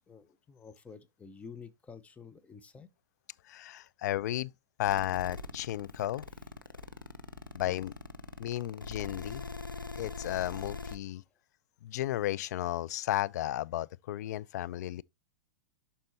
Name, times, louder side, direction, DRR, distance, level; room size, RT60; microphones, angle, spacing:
voice 1, 0.1-2.9, left 6 dB, 10° left, 0.8 m, -50 dB
voice 2, 3.5-4.5 4.8-6.3 7.5-7.9 8.4-9.5 10.0-11.2 11.8-15.0, left 14 dB, 55° left, 0.4 m, -33 dB
sound 1, 4.8-11.0, left 3 dB, 90° left, 0.8 m, -41 dB
11.5 x 4.2 x 2.6 m
figure-of-eight pair, 100°, 11 cm